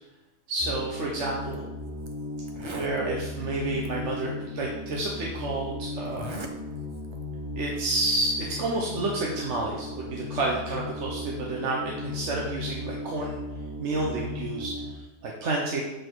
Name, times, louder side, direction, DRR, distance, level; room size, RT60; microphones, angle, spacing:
voice 1, 0.5-1.7 2.6-6.4 7.6-13.4 13.8-15.8, right 2 dB, 60° right, -2 dB, 1.2 m, -30 dB
sound 1, 0.6-14.9, left 2 dB, 5° left, 1.9 m, -36 dB
Zipper (clothing), 1.5-1.6 2.1-2.2 2.4-3.0 3.8-3.9 4.9-5.0 6.0-6.5 6.9-7.2, right 2 dB, 40° right, 0.4 m, -39 dB
7.7 x 4.4 x 4.5 m, 1.0 s
omnidirectional pair, 1.4 m